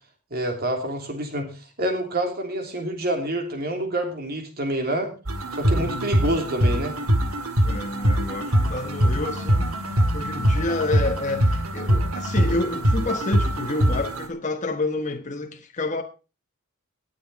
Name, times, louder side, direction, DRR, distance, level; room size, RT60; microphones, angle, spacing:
voice 1, 0.3-5.1 5.5-7.0, right 1 dB, 45° right, 3.0 m, -27 dB
sound 1, 5.3-14.3, equal, 80° right, 2.0 m, -23 dB
voice 2, 5.8-6.2 7.6-16.0, left 2 dB, 35° left, 1.1 m, -29 dB
19.0 x 7.2 x 4.0 m
head